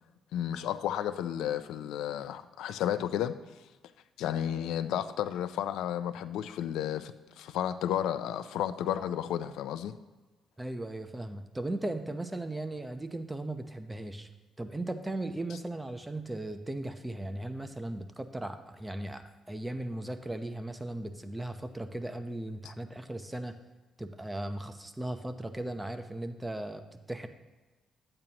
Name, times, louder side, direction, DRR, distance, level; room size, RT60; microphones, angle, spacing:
voice 1, 0.3-3.3 4.2-9.9, left 10 dB, 85° left, 12 dB, 0.4 m, -32 dB
voice 2, 10.6-14.3 14.6-23.5 24.0-26.8 27.1-27.3, right 1 dB, 10° right, 7 dB, 0.8 m, -37 dB
12.0 x 8.8 x 2.9 m, 1.2 s
cardioid pair, 90°, 0 cm